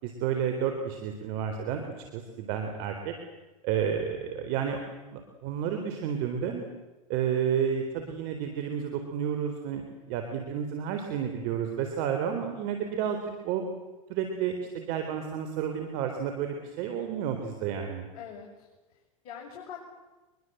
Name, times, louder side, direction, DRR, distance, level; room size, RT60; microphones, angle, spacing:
voice 1, 0.0-1.8 2.1-3.1 3.6-4.8 5.1-6.7 7.1-13.2 13.4-13.6 14.1-18.1, right 8 dB, 55° right, 5 dB, 4.0 m, -31 dB
voice 2, 18.1-19.8, left 8 dB, 60° left, -2 dB, 6.4 m, -44 dB
24.5 x 22.5 x 8.0 m, 1.1 s
hypercardioid pair, 110°, 19 cm